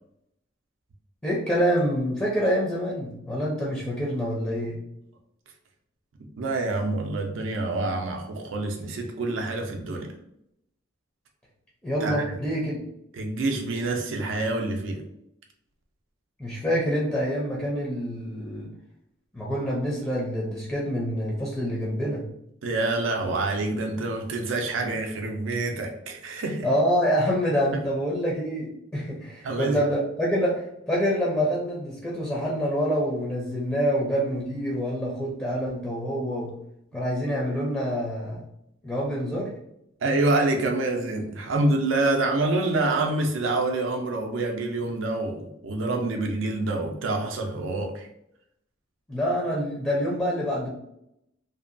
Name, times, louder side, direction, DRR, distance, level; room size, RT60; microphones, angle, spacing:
voice 1, 1.2-4.8 11.8-12.8 16.4-18.7 19.3-22.2 26.6-36.5 36.9-38.4 38.8-39.5 49.1-50.7, equal, 10° left, -5 dB, 0.5 m, -26 dB
voice 2, 6.4-10.1 12.0-12.2 13.1-15.0 22.6-26.7 29.4-29.8 40.0-48.1, right 2 dB, 75° right, 2 dB, 0.4 m, -27 dB
2.7 x 2.2 x 2.5 m, 0.77 s
head